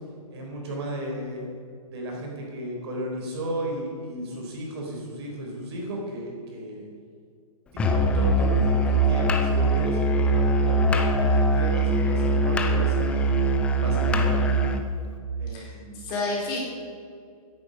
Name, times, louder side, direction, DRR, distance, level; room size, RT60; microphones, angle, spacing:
voice 1, 0.3-1.5 1.9-6.9 7.8-13.2 13.8-14.5 15.4-16.0, right 1 dB, 45° right, -1 dB, 4.0 m, -34 dB
Musical instrument, 7.8-14.9, right 1 dB, 5° left, 0.5 m, -22 dB
voice 2, 15.5-16.6, left 3 dB, 25° left, -4 dB, 4.1 m, -31 dB
15.0 x 10.5 x 5.2 m, 2.3 s
hypercardioid pair, 160°, 19 cm